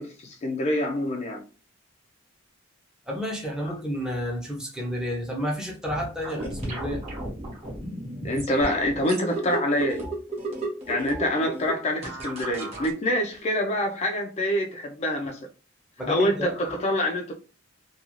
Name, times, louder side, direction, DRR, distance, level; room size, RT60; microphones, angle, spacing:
voice 1, 0.0-1.4 3.7-3.8 8.2-10.1 10.9-15.5 16.0-17.3, left 1 dB, 30° left, 0.3 m, -26 dB
voice 2, 3.1-7.0 8.2-8.3 16.0-16.6, equal, 5° right, 0.6 m, -30 dB
sound 1, 6.2-12.9, right 2 dB, 30° right, 0.9 m, -34 dB
2.4 x 2.3 x 2.9 m
head